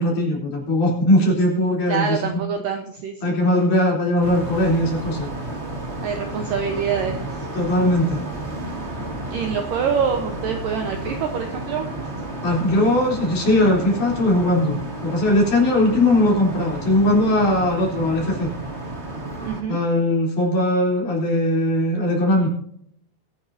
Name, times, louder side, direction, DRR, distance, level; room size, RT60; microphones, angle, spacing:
voice 1, 0.0-2.4 3.2-5.3 7.5-8.2 12.4-18.5 19.7-22.5, left 1 dB, 45° left, -2 dB, 4.9 m, -19 dB
voice 2, 1.9-3.3 6.0-7.4 9.3-11.9 19.4-19.8, right 7 dB, 70° right, 5 dB, 2.1 m, -25 dB
sound 1, 4.2-19.6, right 1 dB, 25° right, 1.5 m, -32 dB
22.5 x 9.2 x 2.8 m, 0.69 s
omnidirectional pair, 5.1 m